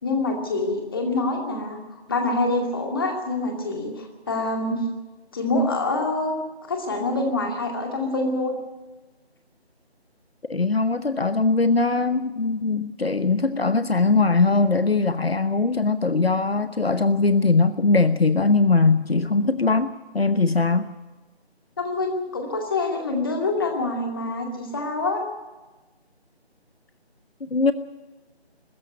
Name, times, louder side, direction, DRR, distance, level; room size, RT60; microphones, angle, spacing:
voice 1, 0.0-4.8 5.3-6.3 6.7-8.5 21.8-25.2, left 2 dB, 20° left, 2 dB, 2.4 m, -26 dB
voice 2, 10.5-20.9 27.5-27.7, left 3 dB, 65° left, 12 dB, 1.0 m, -21 dB
22.0 x 14.0 x 9.4 m, 1.2 s
figure-of-eight pair, 165°, 33 cm